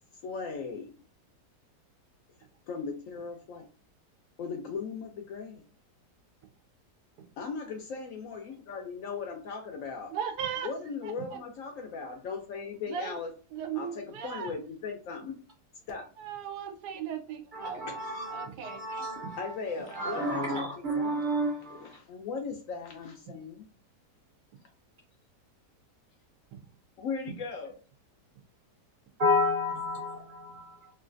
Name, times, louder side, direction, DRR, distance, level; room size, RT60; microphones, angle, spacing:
voice 1, 0.2-0.9 2.7-3.7 4.4-5.6 7.4-10.1 10.6-13.3 13.7-15.4 15.9-16.1 17.9-18.3 19.4-21.2 21.7-23.7 27.0-27.7, left 5 dB, 70° left, 0.8 m, -38 dB
voice 2, 10.1-10.7 11.0-11.4 12.9-13.2 13.5-14.5 16.2-17.9 18.3-18.8 19.2-19.4 26.5-26.6 27.3-27.4, right 8 dB, 85° right, 1.2 m, -37 dB
voice 3, 17.5-19.5 19.9-22.0 29.2-30.9, left 1 dB, 45° right, 0.7 m, -31 dB
3.1 x 2.5 x 2.5 m
omnidirectional pair, 1.7 m